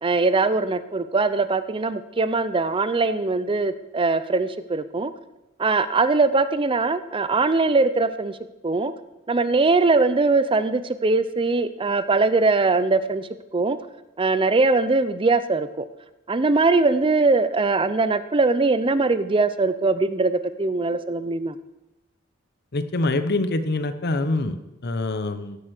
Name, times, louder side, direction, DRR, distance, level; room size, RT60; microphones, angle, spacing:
voice 1, 0.0-5.1 5.6-8.4 8.6-8.9 9.3-13.8 14.2-15.9 16.3-21.6, right 3 dB, 25° right, 13 dB, 0.5 m, -21 dB
voice 2, 22.7-25.6, left 2 dB, 50° left, 11 dB, 0.9 m, -25 dB
16.0 x 7.7 x 6.6 m, 0.99 s
head